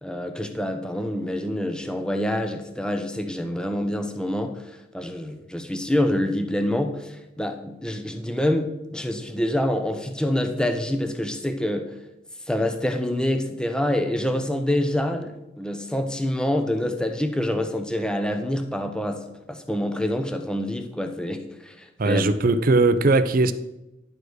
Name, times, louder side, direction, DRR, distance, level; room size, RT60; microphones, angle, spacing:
voice 1, 0.0-11.9 12.5-22.2, left 1 dB, 5° left, 0.8 m, -26 dB
voice 2, 22.0-23.5, right 3 dB, 50° right, 0.6 m, -19 dB
10.5 x 5.0 x 6.3 m
head